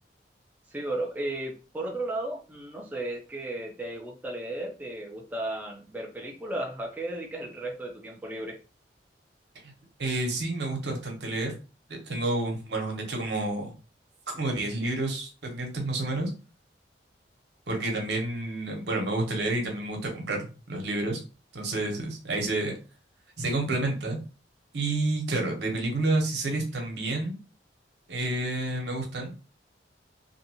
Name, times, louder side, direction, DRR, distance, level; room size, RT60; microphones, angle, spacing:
voice 1, 0.7-8.6, right 1 dB, 10° right, -1 dB, 0.4 m, -34 dB
voice 2, 10.0-11.5 11.9-13.7 14.3-16.3 17.7-21.2 21.5-22.8 23.4-24.2 24.7-27.4 28.1-29.3, right 2 dB, 65° right, 1 dB, 0.8 m, -29 dB
2.6 x 2.3 x 2.8 m, 0.34 s
head